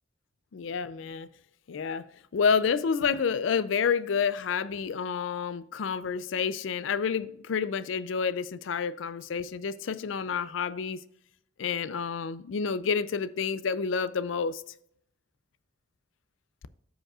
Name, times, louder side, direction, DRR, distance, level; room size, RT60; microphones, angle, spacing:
voice 1, 0.5-1.3 1.7-11.0 11.6-14.6, left 6 dB, 85° left, 0.4 m, -29 dB
13.5 x 5.2 x 2.4 m
head